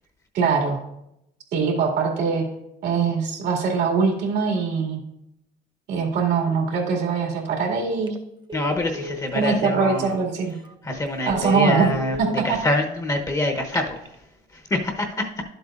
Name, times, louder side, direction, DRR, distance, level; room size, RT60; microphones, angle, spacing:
voice 1, 0.3-0.8 1.5-2.4 2.8-5.0 5.9-8.2 9.3-10.6 11.3-11.9 12.2-12.6, right 5 dB, 80° right, 0 dB, 2.3 m, -22 dB
Telephone, 7.9-8.2 8.5-9.6 10.1-10.2 10.6-10.7 11.2-12.3 13.5-14.1, left 2 dB, 25° right, 0.7 m, -36 dB
voice 2, 8.5-10.1 10.8-12.2 12.4-14.0 14.5-15.3, left 1 dB, 20° left, 3 dB, 0.9 m, -25 dB
11.5 x 7.8 x 2.5 m, 0.82 s
cardioid pair, 110°, 17 cm